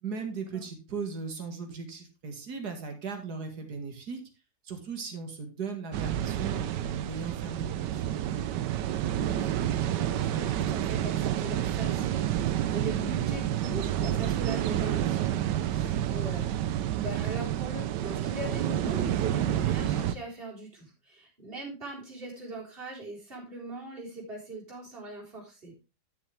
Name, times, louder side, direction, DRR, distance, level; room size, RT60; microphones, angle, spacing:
voice 1, 0.0-4.2 4.6-8.0, right 5 dB, 65° right, 4 dB, 2.5 m, -37 dB
sound 1, 5.9-20.1, right 11 dB, 85° right, 1.3 m, -29 dB
voice 2, 9.1-25.7, right 2 dB, 30° right, -5 dB, 4.3 m, -40 dB
11.5 x 7.3 x 3.5 m, 0.29 s
omnidirectional pair, 1.9 m